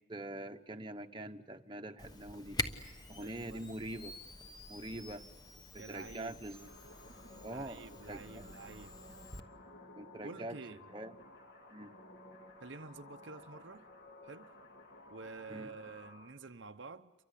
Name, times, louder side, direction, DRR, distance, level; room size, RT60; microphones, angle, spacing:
voice 1, 0.1-2.6 3.1-4.1 4.7-5.2 5.7-6.7 7.4-7.8 8.1-8.4 10.0-10.6 10.9-11.1 11.7-11.9 15.5-15.7, right 1 dB, 20° right, 1.1 m, -44 dB
Camera, 2.0-9.4, left 2 dB, 20° left, 1.1 m, -45 dB
voice 2, 3.2-3.6 5.8-6.4 7.5-9.0 10.2-10.8 12.6-13.9 14.2-14.6 15.1-17.1, right 4 dB, 60° right, 0.8 m, -49 dB
sound 1, 6.5-16.3, left 2 dB, 55° left, 3.1 m, -55 dB
29.5 x 24.0 x 8.4 m
head